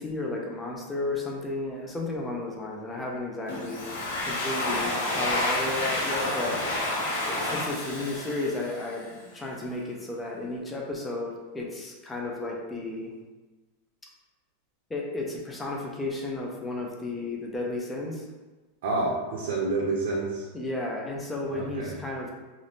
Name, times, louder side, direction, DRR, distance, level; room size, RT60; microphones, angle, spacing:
voice 1, 0.0-3.9 4.2-6.6 7.3-9.1 9.3-13.1 14.9-18.3 20.5-22.3, left 2 dB, 10° left, -2 dB, 0.3 m, -33 dB
Domestic sounds home sounds, 3.5-9.1, left 1 dB, 70° left, 1.0 m, -29 dB
voice 2, 18.8-20.5 21.5-22.0, right 3 dB, 65° right, -4 dB, 0.5 m, -28 dB
2.6 x 2.4 x 3.4 m, 1.2 s
supercardioid pair, 180°, 0 cm